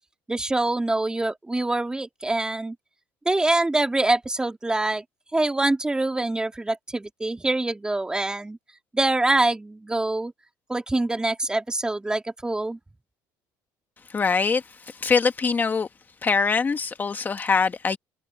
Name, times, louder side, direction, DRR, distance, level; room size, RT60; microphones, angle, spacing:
voice 1, 0.3-2.8 3.3-5.0 5.3-8.6 8.9-10.3 10.7-12.8, right 2 dB, 10° right, 2.5 m, -25 dB
voice 2, 14.1-15.9 16.2-18.0, left 5 dB, 25° left, 1.4 m, -23 dB
cardioid pair, 110°, 7 cm